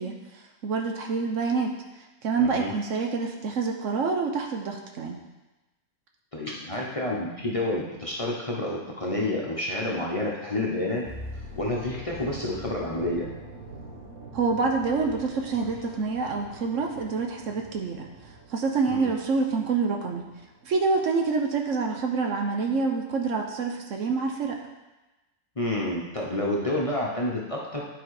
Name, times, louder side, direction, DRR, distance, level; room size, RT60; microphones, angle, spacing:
voice 1, 0.0-1.7 2.2-5.2 14.3-18.1 18.5-20.2 20.6-24.6, right 4 dB, 65° right, 2 dB, 1.1 m, -27 dB
voice 2, 2.4-2.7 6.3-11.0 11.6-13.3 18.9-19.1 25.6-27.8, left 1 dB, 25° left, -4 dB, 0.9 m, -29 dB
sound 1, 11.0-21.0 21.3-21.5, right 1 dB, 85° right, 1.8 m, -44 dB
10.0 x 4.0 x 4.8 m, 1.1 s
omnidirectional pair, 1.5 m